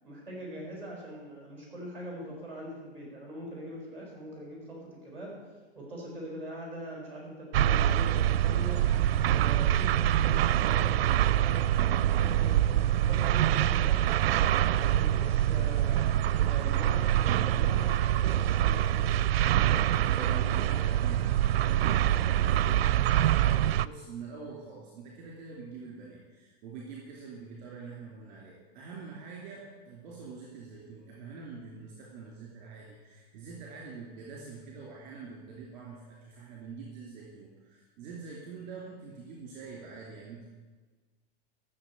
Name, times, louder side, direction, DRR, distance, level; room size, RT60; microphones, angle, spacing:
voice 1, 0.0-5.3 5.7-8.9 9.2-14.1 14.6-19.2, right 1 dB, 5° left, -2 dB, 4.8 m, -43 dB
sound 1, 7.5-23.9, right 11 dB, 75° right, 0.5 m, -25 dB
voice 2, 20.0-40.5, right 4 dB, 25° right, -3 dB, 2.7 m, -45 dB
13.0 x 6.8 x 8.3 m, 1.4 s
supercardioid pair, 180°, 31 cm